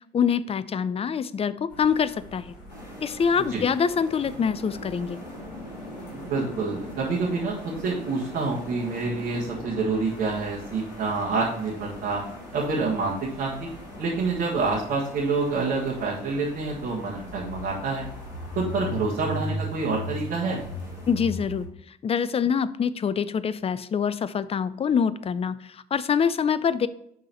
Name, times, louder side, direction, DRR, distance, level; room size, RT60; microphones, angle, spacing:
voice 1, 0.1-2.5 3.0-5.2 21.1-21.7 22.0-26.9, left 7 dB, 30° left, 16 dB, 0.5 m, -25 dB
sound 1, 1.7-21.6, left 1 dB, 70° left, 2.7 m, -41 dB
sound 2, 2.7-21.1, left 1 dB, 85° left, 1.8 m, -44 dB
voice 2, 6.1-12.2 12.5-13.7 14.0-18.0 18.6-20.6, right 3 dB, 55° right, -5 dB, 1.8 m, -27 dB
11.0 x 3.8 x 2.9 m, 0.74 s
figure-of-eight pair, 50°, 21 cm